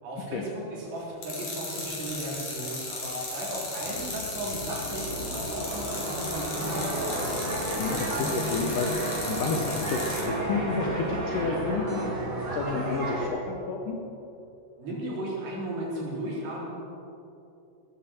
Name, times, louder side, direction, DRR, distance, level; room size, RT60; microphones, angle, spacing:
voice 1, 0.0-7.4 14.8-16.7, right 1 dB, 80° right, -6 dB, 6.0 m, -35 dB
sound 1, 1.2-10.2, left 2 dB, 45° left, 3.8 m, -36 dB
sound 2, 3.8-13.3, right 1 dB, 50° right, 4.8 m, -37 dB
sound 3, 6.6-13.3, equal, 25° right, 3.1 m, -32 dB
voice 2, 7.8-14.0, left 3 dB, 70° left, 1 dB, 2.1 m, -31 dB
17.5 x 14.0 x 4.5 m, 2.8 s
omnidirectional pair, 4.8 m